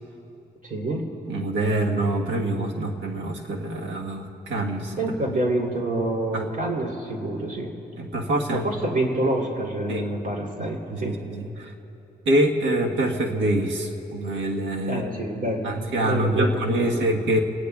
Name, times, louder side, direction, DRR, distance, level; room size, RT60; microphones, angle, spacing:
voice 1, 0.6-1.1 5.0-7.7 8.5-11.2 14.9-17.1, right 1 dB, 50° right, 0 dB, 3.3 m, -27 dB
voice 2, 1.3-5.0 6.3-6.4 8.0-8.6 9.9-10.0 10.6-11.7 12.2-15.0 15.6-17.4, right 1 dB, 85° right, 1 dB, 1.5 m, -25 dB
26.0 x 19.0 x 2.4 m, 2.9 s
supercardioid pair, 50°, 19 cm